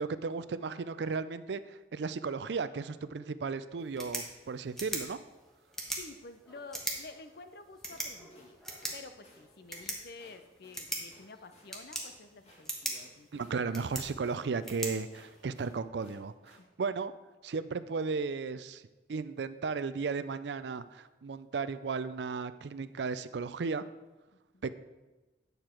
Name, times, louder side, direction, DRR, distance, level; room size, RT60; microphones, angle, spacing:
voice 1, 0.0-5.2 13.3-17.1 17.4-18.8 19.1-23.8 24.6-24.7, right 4 dB, 70° right, 14 dB, 0.4 m, -35 dB
sound 1, 3.8-15.8, right 1 dB, ahead, 1.2 m, -42 dB
voice 2, 5.9-8.6 8.9-13.7 16.6-16.7 24.5-24.7, left 3 dB, 60° left, 9 dB, 0.6 m, -50 dB
sound 2, 7.7-16.7, left 1 dB, 35° left, 1.9 m, -61 dB
9.6 x 6.6 x 4.4 m, 1.1 s
head